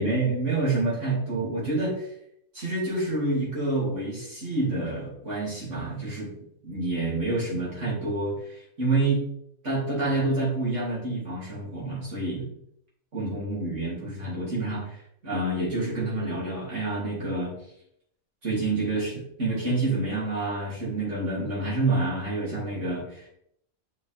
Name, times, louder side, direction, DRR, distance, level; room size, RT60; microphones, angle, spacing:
voice 1, 0.0-2.1 2.5-6.3 6.6-9.2 9.6-12.5 13.1-15.0 15.2-17.5 18.4-23.3, right 2 dB, 55° right, -6 dB, 3.6 m, -28 dB
6.6 x 6.4 x 3.5 m, 0.73 s
omnidirectional pair, 1.5 m